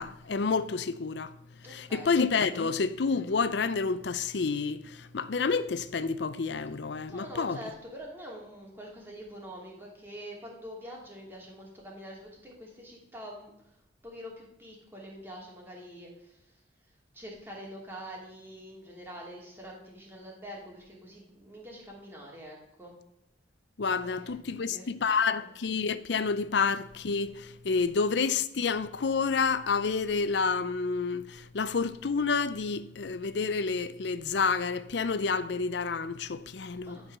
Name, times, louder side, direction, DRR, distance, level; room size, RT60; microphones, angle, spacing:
voice 1, 0.0-1.3 1.7-7.6 23.8-37.2, left 5 dB, 65° left, 0.5 m, -29 dB
voice 2, 1.6-2.2 2.6-2.8 7.1-13.8 14.0-16.6 17.1-23.0 24.1-25.5 27.7-28.1 36.8-37.2, equal, 10° right, 2.7 m, -45 dB
12.5 x 4.7 x 6.6 m
head